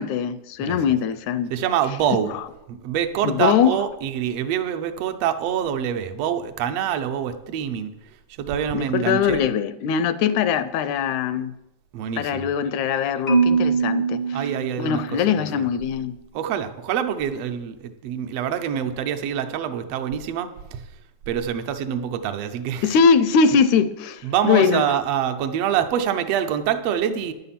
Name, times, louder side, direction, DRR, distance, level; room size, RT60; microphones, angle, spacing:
voice 1, 0.0-1.5 3.2-3.8 8.7-11.5 12.2-14.2 14.8-16.2 22.8-24.8, left 6 dB, 80° left, 14 dB, 1.9 m, -21 dB
voice 2, 1.5-2.4 2.7-9.4 11.9-12.5 14.3-15.3 15.6-15.7 16.3-20.9 21.3-23.0 24.2-27.3, right 9 dB, 75° right, 8 dB, 1.5 m, -25 dB
Marimba xylophone, 13.3-15.5, right 5 dB, 50° left, 0.7 m, -22 dB
10.5 x 7.7 x 5.7 m, 0.93 s
omnidirectional pair, 3.5 m